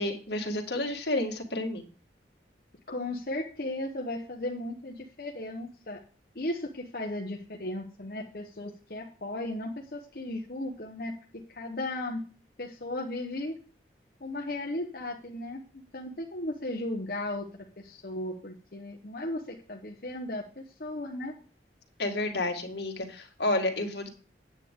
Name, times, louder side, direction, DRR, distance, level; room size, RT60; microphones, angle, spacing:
voice 1, 0.0-1.8 22.0-24.1, left 2 dB, 70° left, 3 dB, 2.0 m, -30 dB
voice 2, 2.9-6.0 6.3-12.2 12.6-13.6 14.2-21.3, left 1 dB, 55° left, 1 dB, 1.1 m, -36 dB
9.1 x 8.5 x 3.7 m, 0.39 s
head